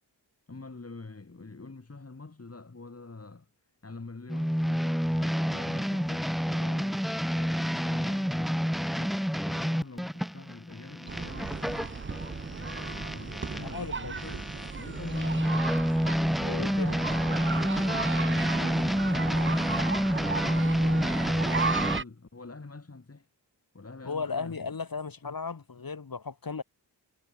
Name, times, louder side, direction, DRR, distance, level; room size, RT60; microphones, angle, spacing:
voice 1, 0.5-3.5 3.8-7.0 7.3-11.6 12.6-15.7 16.4-16.8 18.2-23.3 23.7-24.6, left 3 dB, 35° left, 6.4 m, -46 dB
sound 1, 4.3-13.7 14.2-22.0, equal, ahead, 1.6 m, -29 dB
sound 2, 11.1-22.0, right 5 dB, 30° right, 0.8 m, -35 dB
voice 2, 13.6-14.4 16.4-17.0 24.0-26.6, left 5 dB, 55° left, 6.0 m, -36 dB
wide cardioid pair, 120°, 42 cm